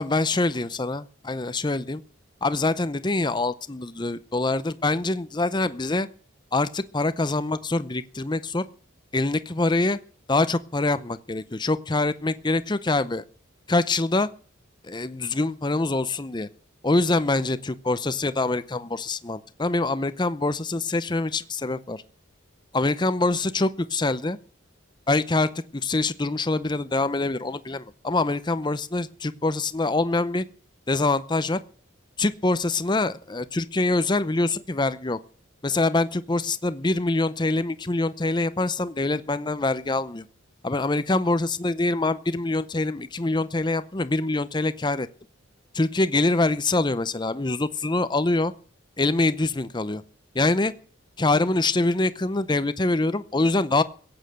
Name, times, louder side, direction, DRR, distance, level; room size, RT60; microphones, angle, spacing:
voice 1, 0.0-2.0 2.4-6.1 6.5-8.6 9.1-10.0 10.3-13.2 13.7-14.3 14.8-16.5 16.8-22.0 22.7-24.4 25.1-30.4 30.9-31.6 32.2-35.2 35.6-40.3 40.6-45.1 45.7-48.5 49.0-50.0 50.3-50.7 51.2-53.8, left 2 dB, 20° left, 14 dB, 0.6 m, -24 dB
16.5 x 8.9 x 7.8 m, 0.43 s
head